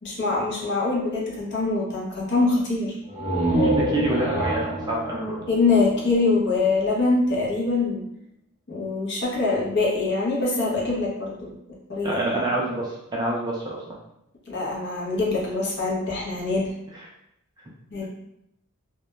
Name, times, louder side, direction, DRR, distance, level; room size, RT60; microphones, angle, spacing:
voice 1, 0.0-3.0 5.5-8.0 8.7-11.5 11.9-12.4 14.5-16.7 17.9-18.0, left 3 dB, 50° left, -3 dB, 0.7 m, -24 dB
sound 1, 3.0-6.7, right 1 dB, 20° left, 0.9 m, -26 dB
voice 2, 3.6-5.4 12.0-14.0 16.9-17.1, right 2 dB, 20° right, -3 dB, 0.4 m, -27 dB
2.1 x 2.1 x 2.9 m, 0.79 s
head